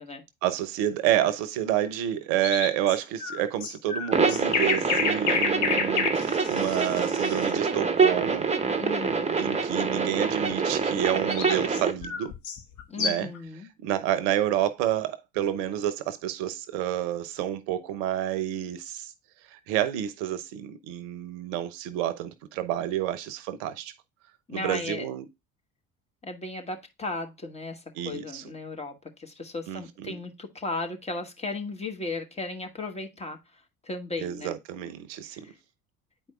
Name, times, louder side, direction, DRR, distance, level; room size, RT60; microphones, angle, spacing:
voice 1, 0.4-8.5 9.4-12.3 13.0-13.3 13.8-19.1 19.5-23.9 24.5-25.2 27.9-28.5 29.7-30.2 34.2-35.5, right 11 dB, 60° right, 0.8 m, -29 dB
sound 1, 2.4-7.5 11.0-13.4, left 5 dB, 45° left, 1.1 m, -30 dB
sound 2, 4.1-11.9, right 5 dB, 15° right, 0.9 m, -26 dB
voice 2, 8.8-9.4 12.9-13.7 24.5-25.1 26.2-33.4 33.8-34.5, left 3 dB, 15° left, 1.3 m, -35 dB
8.9 x 4.6 x 2.3 m
figure-of-eight pair, 60°, 40 cm